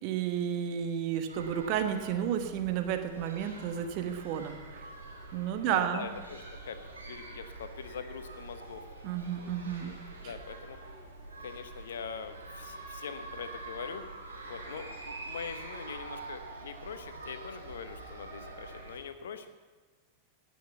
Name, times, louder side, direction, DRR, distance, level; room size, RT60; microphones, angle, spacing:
voice 1, 0.0-4.9 5.3-6.1 9.0-9.9 10.2-10.3, right 9 dB, 45° right, 7 dB, 1.2 m, -32 dB
sound 1, 1.3-19.0, right 2 dB, 75° right, 3.4 m, -45 dB
voice 2, 5.7-8.9 9.6-9.9 10.2-10.8 11.4-14.1 14.5-19.5, left 6 dB, 65° left, 10 dB, 1.0 m, -43 dB
17.5 x 6.4 x 7.1 m, 1.4 s
figure-of-eight pair, 90°, 0 cm